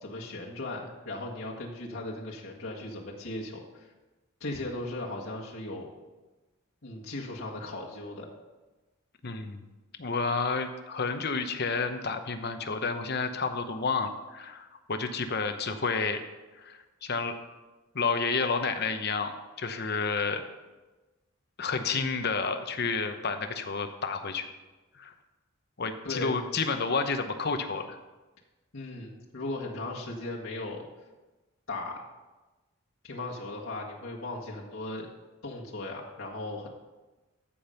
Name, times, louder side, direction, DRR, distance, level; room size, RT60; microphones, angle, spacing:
voice 1, 0.0-3.9 4.4-5.9 6.8-8.3 26.0-26.4 28.7-30.9 31.7-32.0 33.0-35.1 35.4-36.7, left 2 dB, 85° left, -3 dB, 1.8 m, -37 dB
voice 2, 9.2-9.6 10.0-16.2 16.6-17.3 17.9-19.3 19.6-20.4 21.6-24.5 25.0-25.1 25.8-28.0, left 4 dB, 55° left, 8 dB, 0.9 m, -30 dB
14.0 x 5.2 x 5.8 m, 1.2 s
head